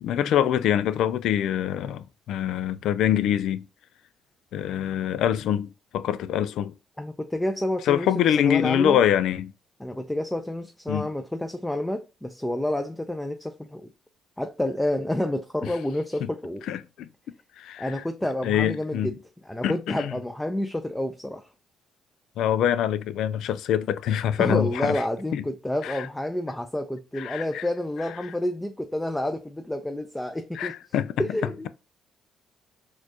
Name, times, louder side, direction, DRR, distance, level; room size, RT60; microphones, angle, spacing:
voice 1, 0.0-3.6 4.5-6.7 7.9-9.5 10.9-11.1 16.7-17.1 17.6-17.9 18.4-19.1 19.6-20.1 22.4-25.0 25.3-25.4 25.8-26.1 27.2-27.6 30.6-31.1, left 10 dB, 75° left, 0.3 m, -24 dB
voice 2, 7.0-9.0 9.8-13.9 14.4-16.6 17.8-19.1 19.4-21.5 24.4-30.8 31.2-31.7, left 1 dB, 10° left, 0.5 m, -29 dB
4.2 x 2.4 x 2.8 m
supercardioid pair, 60°, 0 cm